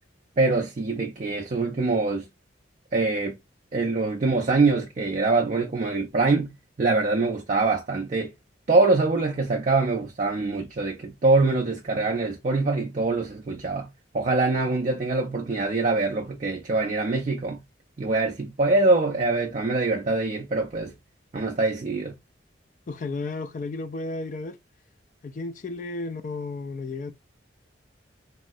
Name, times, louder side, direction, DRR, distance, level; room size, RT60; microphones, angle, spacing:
voice 1, 0.4-2.3 2.9-3.4 3.7-6.5 6.8-8.3 8.7-13.9 14.1-17.6 18.0-20.9 21.3-22.1, right 3 dB, 40° right, 0.4 m, -24 dB
voice 2, 22.9-24.6 25.2-27.1, left 3 dB, 40° left, 0.3 m, -33 dB
3.1 x 2.7 x 2.5 m
head